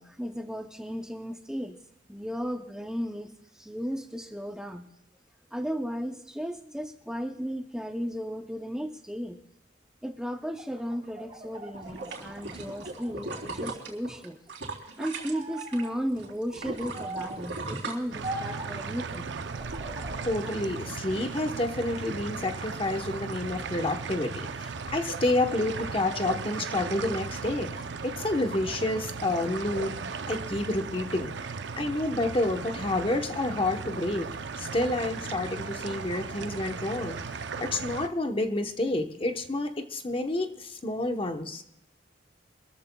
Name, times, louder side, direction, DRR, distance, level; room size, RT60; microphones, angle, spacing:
voice 1, 0.0-1.8 2.1-4.9 5.5-9.4 10.0-14.4 14.7-19.3, equal, 5° right, 4 dB, 0.6 m, -35 dB
sound 1, 10.4-13.6 14.0-14.9 15.3-15.9 16.9-17.5 18.2-18.8 19.5-20.6 21.1-22.0 22.5-23.2, right 2 dB, 30° right, 3.9 m, -41 dB
sound 2, 11.7-15.9 16.2-18.7 19.1-19.2, right 3 dB, 90° right, 3.3 m, -38 dB
sound 3, 18.1-38.1, right 5 dB, 70° right, 0.6 m, -37 dB
voice 2, 20.2-31.3 31.8-34.3 34.6-37.2 37.6-41.6, left 2 dB, 30° left, 6 dB, 1.0 m, -29 dB
25.5 x 14.0 x 2.3 m, 0.85 s
head